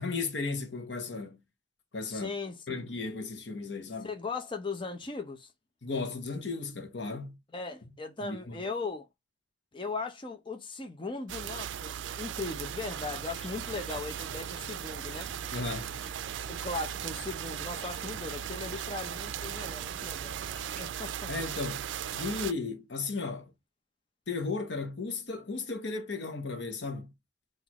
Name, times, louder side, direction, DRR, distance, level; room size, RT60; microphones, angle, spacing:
voice 1, 0.0-1.4 1.9-2.3 2.7-4.1 5.8-7.4 8.2-8.6 15.5-15.9 21.3-21.9 22.1-23.5 24.3-27.1, left 4 dB, 70° left, 0.9 m, -35 dB
voice 2, 2.1-2.9 4.0-5.5 7.5-9.1 9.7-15.3 16.5-20.4 20.8-21.3, left 3 dB, 30° left, 0.7 m, -38 dB
sound 1, 11.3-22.5, right 9 dB, 85° right, 0.4 m, -38 dB
sound 2, 12.9-20.8, equal, 5° left, 1.0 m, -51 dB
6.1 x 2.6 x 3.0 m
head